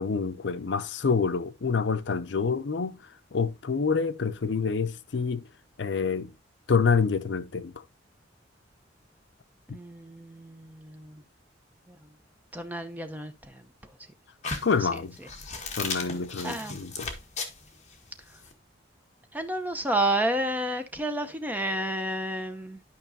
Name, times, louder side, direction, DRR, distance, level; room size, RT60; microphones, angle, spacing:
voice 1, 0.0-3.0 3.3-5.5 5.8-6.3 6.7-7.7 14.6-15.2 15.8-17.1, left 5 dB, 70° left, 0.6 m, -27 dB
voice 2, 9.7-11.2 11.9-12.1 12.5-13.7 14.8-15.3 16.4-16.8 18.3-18.4 19.3-22.8, right 1 dB, 10° right, 0.7 m, -31 dB
sound 1, 14.4-18.5, left 4 dB, 35° left, 1.5 m, -36 dB
11.5 x 5.3 x 2.7 m
head